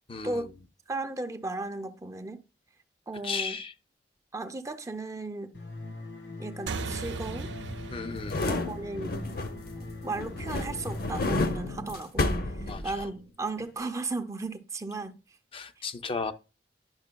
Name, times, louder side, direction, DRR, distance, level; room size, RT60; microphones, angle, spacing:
voice 1, 0.1-0.4 3.2-3.7 7.9-8.4 12.7-12.8 15.5-16.3, left 4 dB, 30° left, 0.5 m, -34 dB
voice 2, 0.9-2.4 3.1-3.6 4.3-5.5 6.4-7.6 8.5-9.2 9.8-15.2, right 3 dB, 20° right, 0.5 m, -35 dB
sound 1, 5.5-11.1, left 2 dB, 90° left, 3.1 m, -42 dB
sound 2, 6.7-11.5, right 3 dB, 90° right, 0.5 m, -40 dB
sound 3, 8.1-9.8 10.1-13.2 13.6-13.7, left 2 dB, 60° left, 0.7 m, -31 dB
10.5 x 5.8 x 2.2 m
head